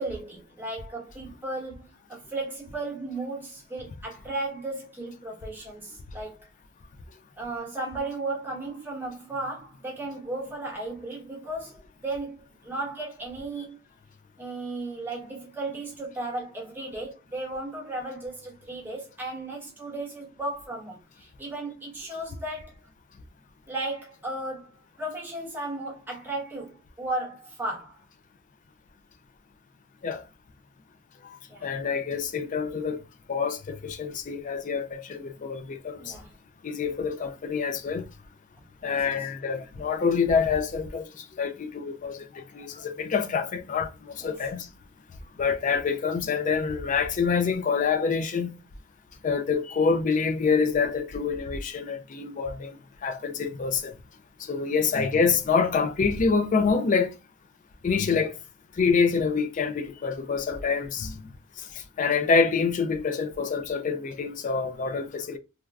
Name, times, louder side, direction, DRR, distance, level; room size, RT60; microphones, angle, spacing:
voice 1, 0.0-6.5 7.4-13.8 14.4-22.7 23.7-28.0 31.5-31.7 36.0-36.3 38.8-39.3 44.2-44.4, right 2 dB, 10° right, 1.1 m, -35 dB
voice 2, 31.6-33.0 33.3-36.0 36.6-38.1 38.8-41.1 41.4-44.7 45.4-48.5 49.2-52.8 53.0-53.9 54.4-57.1 57.8-58.3 58.8-61.2 62.0-65.4, left 5 dB, 35° left, 0.3 m, -26 dB
3.2 x 2.2 x 2.3 m
head